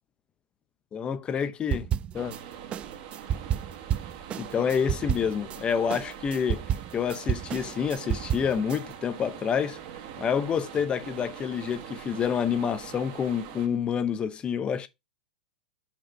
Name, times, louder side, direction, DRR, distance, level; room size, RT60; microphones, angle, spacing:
voice 1, 0.9-1.9 2.1-2.3 4.4-6.7 6.9-9.8 10.2-14.9, left 7 dB, 25° left, 0.8 m, -28 dB
sound 1, 1.7-2.4 2.7-5.6 5.9-8.8, right 10 dB, 25° right, 0.3 m, -30 dB
sound 2, 2.1-13.7, right 9 dB, 50° right, 1.5 m, -43 dB
5.9 x 3.6 x 5.5 m
hypercardioid pair, 115°, 4 cm